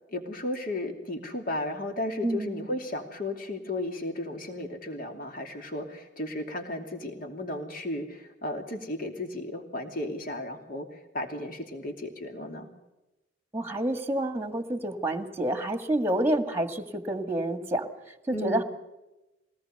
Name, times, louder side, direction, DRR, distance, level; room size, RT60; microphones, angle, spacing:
voice 1, 0.1-12.7 18.3-18.6, left 1 dB, 45° left, 4 dB, 2.9 m, -34 dB
voice 2, 2.2-2.7 13.5-18.6, right 1 dB, 10° right, 8 dB, 1.8 m, -29 dB
22.0 x 19.0 x 6.7 m, 1.0 s
head